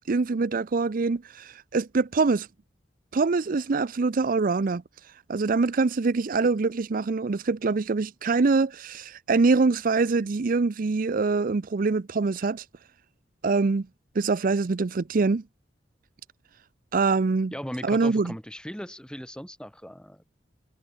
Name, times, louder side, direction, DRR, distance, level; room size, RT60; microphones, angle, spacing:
voice 1, 0.1-2.5 3.1-4.8 5.3-12.7 13.4-13.9 14.2-15.4 16.9-17.5 17.8-18.3, right 4 dB, 50° right, 0.5 m, -24 dB
voice 2, 17.5-20.2, equal, 5° left, 5.6 m, -38 dB
head